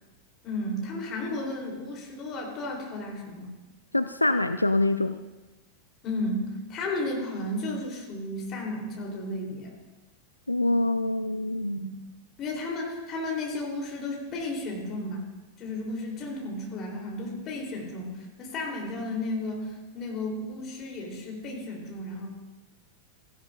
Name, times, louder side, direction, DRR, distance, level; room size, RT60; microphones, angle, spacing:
voice 1, 0.4-3.5 6.0-9.7 11.7-11.9 12.4-15.3 15.6-18.1 18.4-22.3, left 1 dB, 30° left, -1 dB, 3.4 m, -33 dB
voice 2, 3.9-5.2 10.5-11.8, left 2 dB, 85° left, 10 dB, 0.3 m, -25 dB
17.0 x 15.0 x 2.5 m, 1.1 s
figure-of-eight pair, 90°, 0 cm